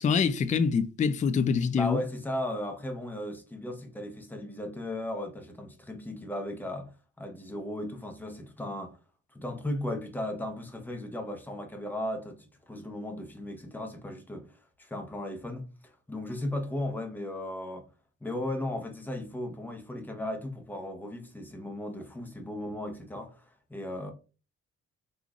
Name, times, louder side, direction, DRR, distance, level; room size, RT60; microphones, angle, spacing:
voice 1, 0.0-2.0, left 6 dB, 25° left, 0.3 m, -25 dB
voice 2, 1.7-6.9 7.2-8.9 9.3-14.5 14.8-17.8 18.2-23.4 23.7-24.1, left 1 dB, 5° left, 0.8 m, -36 dB
3.7 x 3.1 x 2.4 m
cardioid pair, 90°, 30 cm